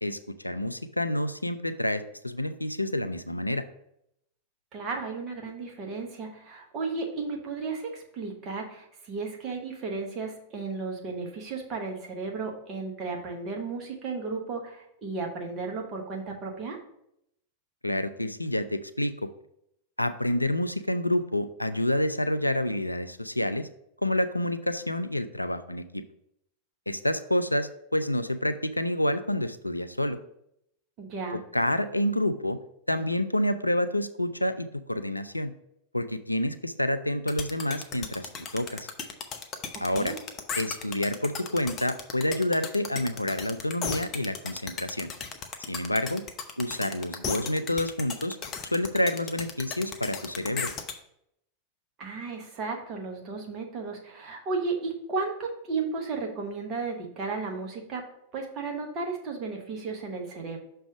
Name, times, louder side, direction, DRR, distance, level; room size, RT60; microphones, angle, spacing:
voice 1, 0.0-3.6 17.8-19.3 20.0-23.7 24.0-26.0 26.9-30.2 31.3-32.6 32.9-35.5 35.9-38.9 39.8-40.1 40.6-45.1 45.7-46.2 46.6-48.4 48.7-50.7, left 1 dB, 85° left, 11 dB, 0.3 m, -28 dB
voice 2, 4.7-16.8 31.0-31.4 39.7-40.2 52.0-58.0 58.3-60.6, right 4 dB, 35° right, 1 dB, 1.3 m, -34 dB
sound 1, 37.3-50.9, left 6 dB, 30° left, 0.7 m, -36 dB
6.1 x 3.4 x 6.0 m, 0.77 s
figure-of-eight pair, 90°, 0 cm